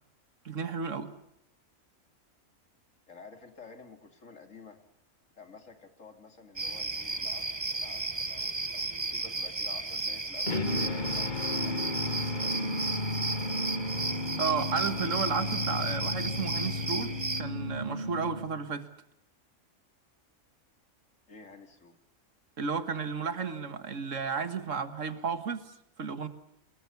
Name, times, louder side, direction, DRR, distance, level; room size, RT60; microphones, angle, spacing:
voice 1, 0.5-1.1 14.4-18.9 22.6-25.7 26.0-26.3, right 5 dB, 70° right, 11 dB, 2.0 m, -33 dB
voice 2, 3.1-4.8 5.4-10.6 11.1-11.8 12.3-12.7 21.3-22.0, left 4 dB, 75° left, 6 dB, 3.3 m, -51 dB
sound 1, 6.6-17.4, right 3 dB, 20° right, 1.1 m, -34 dB
sound 2, 10.5-18.7, left 2 dB, 40° left, 1.5 m, -33 dB
26.5 x 21.5 x 7.1 m, 0.76 s
omnidirectional pair, 1.3 m